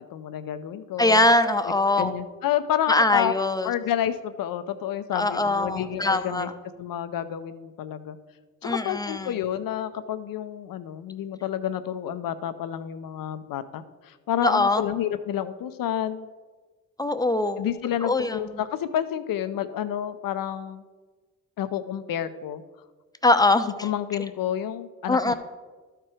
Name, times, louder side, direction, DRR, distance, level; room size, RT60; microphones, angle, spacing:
voice 1, 0.1-1.3 1.7-3.3 3.6-6.5 6.8-8.2 8.6-16.3 17.6-20.8 21.6-22.6 23.8-25.3, left 10 dB, 70° left, 12 dB, 0.6 m, -29 dB
voice 2, 1.0-2.1 2.9-3.7 5.1-6.5 8.6-9.2 14.4-14.8 17.0-17.6 18.0-18.4 23.2-23.7 25.1-25.3, left 2 dB, 10° left, 9 dB, 0.7 m, -22 dB
12.5 x 4.5 x 4.9 m, 1.4 s
supercardioid pair, 55°, 35 cm